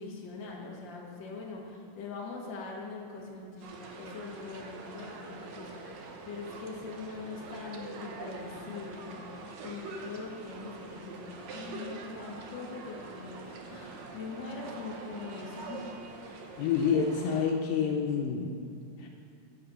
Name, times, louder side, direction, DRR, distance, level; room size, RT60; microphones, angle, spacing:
voice 1, 0.0-15.9, left 4 dB, 60° left, -1 dB, 1.2 m, -42 dB
sound 1, 3.6-17.4, right 3 dB, 65° right, 1.8 m, -45 dB
voice 2, 16.6-18.5 19.0-19.1, left 6 dB, 80° left, 1 dB, 2.3 m, -28 dB
10.0 x 8.0 x 6.1 m, 2.5 s
omnidirectional pair, 4.1 m